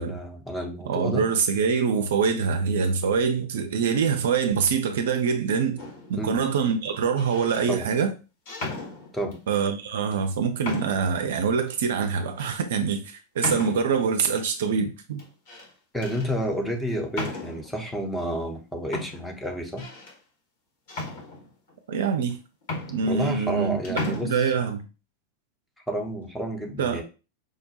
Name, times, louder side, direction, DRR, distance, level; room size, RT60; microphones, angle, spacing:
voice 1, 0.0-1.3 6.2-6.4 7.7-7.9 9.1-9.4 15.9-19.9 23.0-24.5 25.9-27.0, equal, 5° left, 0.7 m, -30 dB
voice 2, 0.9-5.8 6.1-8.1 9.5-15.2 21.9-22.4 22.9-24.9 26.8-27.0, right 6 dB, 60° right, 0.5 m, -25 dB
sound 1, 5.8-6.2 7.0-7.6 8.5-9.4 10.1-10.2 10.6-11.2 11.7-11.8 12.4-12.6 13.4-14.1 15.2-15.7 16.0-16.3 17.1-17.8 18.5-18.6 18.9-20.2 20.9-21.7 22.3-22.4 22.6-23.6 23.8-24.2, left 2 dB, 55° left, 1.2 m, -35 dB
4.9 x 2.2 x 2.7 m
figure-of-eight pair, 90°, 0 cm